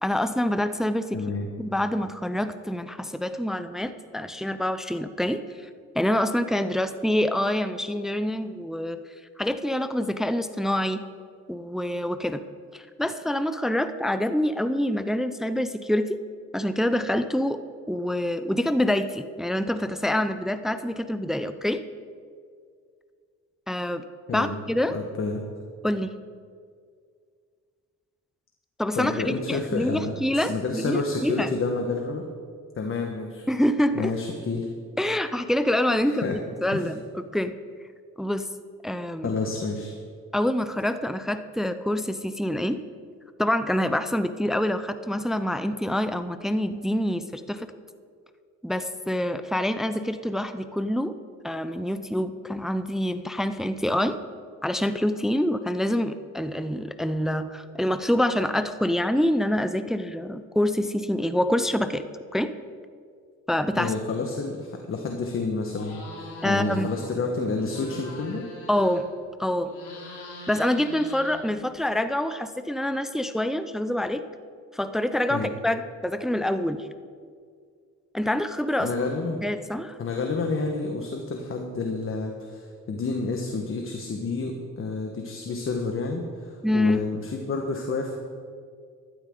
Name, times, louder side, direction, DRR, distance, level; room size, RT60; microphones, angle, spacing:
voice 1, 0.0-1.2 1.6-5.7 5.9-9.0 9.4-11.0 11.5-12.4 12.7-16.2 16.5-17.6 17.9-21.8 23.7-24.1 24.3-24.9 25.8-26.1 28.8-31.5 33.5-34.1 35.0-37.5 38.2-38.5 38.8-39.3 40.3-42.8 43.4-47.7 48.6-51.1 51.4-54.2 54.6-62.0 62.3-62.5 63.5-63.9 66.4-66.9 68.7-69.1 69.4-69.7 70.5-74.2 74.7-76.9 78.1-78.9 79.4-80.0 86.6-87.1, left 1 dB, ahead, 11 dB, 0.5 m, -26 dB
voice 2, 1.1-1.5 24.3-24.6 24.9-25.4 28.9-32.3 32.8-33.4 33.9-34.7 36.0-36.4 36.7-36.9 39.2-39.9 63.8-68.5 75.3-75.5 78.8-79.4 80.0-88.1, left 3 dB, 45° left, 3 dB, 1.3 m, -29 dB
sound 1, 65.7-67.1 67.4-69.2 69.6-71.8, left 2 dB, 80° left, 3.7 m, -42 dB
14.5 x 12.5 x 3.8 m, 2.1 s
cardioid pair, 90°, 30 cm